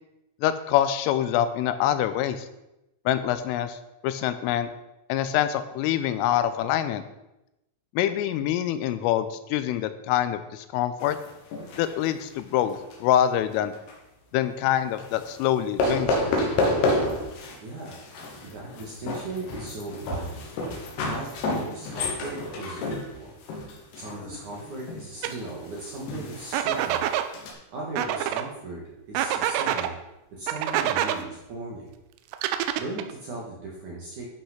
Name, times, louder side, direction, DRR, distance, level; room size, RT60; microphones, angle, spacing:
voice 1, 0.4-2.5 3.1-3.8 4.0-4.7 5.1-7.0 8.0-11.2 11.8-13.7 14.3-16.3, left 11 dB, 90° left, 11 dB, 3.3 m, -25 dB
sound 1, 11.0-13.2 13.5-13.9 15.0-15.5 15.8-17.6 17.9-27.5, left 2 dB, 65° left, 3.3 m, -30 dB
voice 2, 17.6-17.9 18.4-20.5 21.0-23.3 23.9-27.0 27.7-30.0 30.3-31.9 32.7-34.2, right 2 dB, 60° right, -3 dB, 2.2 m, -37 dB
sound 2, 25.2-25.3 26.5-27.3 28.0-28.4 29.1-29.9 30.5-31.2 32.3-33.1, right 11 dB, 90° right, 3.3 m, -26 dB
12.0 x 5.6 x 5.8 m, 0.92 s
omnidirectional pair, 5.7 m